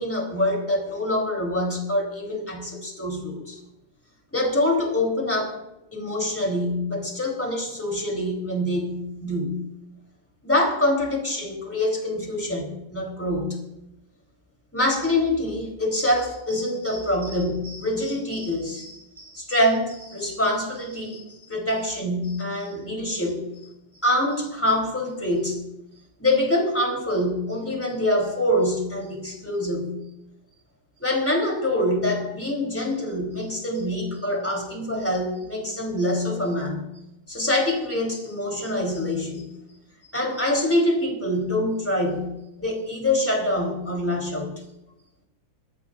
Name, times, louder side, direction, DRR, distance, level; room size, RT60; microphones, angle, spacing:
voice 1, 0.0-3.6 4.3-5.6 5.9-9.6 10.4-13.6 14.7-23.5 24.0-25.6 26.2-30.0 31.0-36.8 37.3-39.5 40.1-44.5, left 1 dB, 5° left, 0 dB, 2.8 m, -25 dB
27.5 x 14.0 x 2.5 m, 0.89 s
omnidirectional pair, 3.8 m